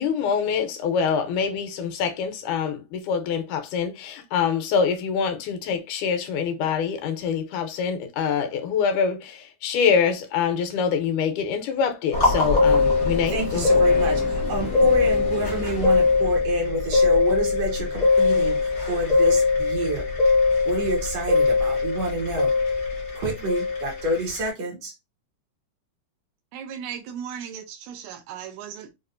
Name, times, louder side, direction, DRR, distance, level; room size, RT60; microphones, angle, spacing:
voice 1, 0.0-13.9, left 6 dB, 85° left, 2.1 m, -25 dB
sound 1, 12.1-24.5, left 4 dB, 60° left, 0.7 m, -21 dB
voice 2, 13.3-20.1 20.7-22.5 23.2-24.9, right 1 dB, 65° right, 1.8 m, -28 dB
voice 3, 26.5-28.9, right 8 dB, 80° right, 1.9 m, -36 dB
5.3 x 2.4 x 2.5 m
omnidirectional pair, 3.5 m